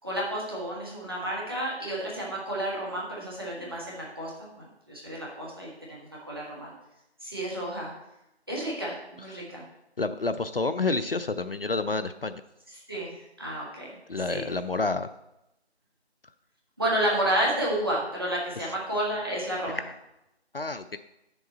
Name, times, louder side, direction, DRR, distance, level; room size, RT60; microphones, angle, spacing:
voice 1, 0.0-6.7 7.2-7.9 8.5-9.6 12.7-13.9 14.3-14.5 16.8-19.8, right 1 dB, 20° right, -4 dB, 1.4 m, -31 dB
voice 2, 10.0-12.4 14.1-15.1 19.8-19.9 20.5-21.0, left 3 dB, 60° left, 11 dB, 0.4 m, -29 dB
8.1 x 6.8 x 4.2 m, 0.89 s
figure-of-eight pair, 165°, 33 cm